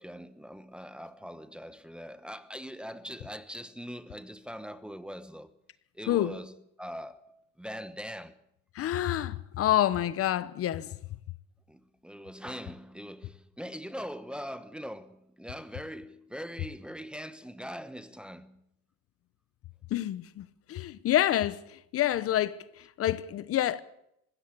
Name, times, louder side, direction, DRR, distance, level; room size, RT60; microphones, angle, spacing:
voice 1, 0.0-5.5 5.9-6.5 6.8-8.4 11.7-18.6, equal, 5° right, 1.1 m, -42 dB
voice 2, 6.1-6.4 8.7-10.9 19.9-23.8, left 12 dB, 45° left, 1.1 m, -28 dB
21.0 x 16.0 x 8.5 m
cardioid pair, 120°, 31 cm